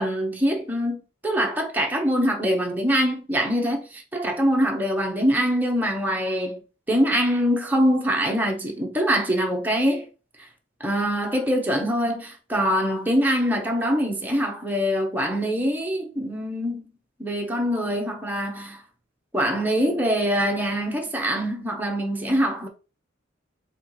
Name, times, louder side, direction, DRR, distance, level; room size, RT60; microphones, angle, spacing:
voice 1, 0.0-6.6 6.9-10.0 10.8-16.9 17.2-18.8 19.3-22.7, equal, 10° right, 0.8 m, -24 dB
4.4 x 3.6 x 3.0 m
head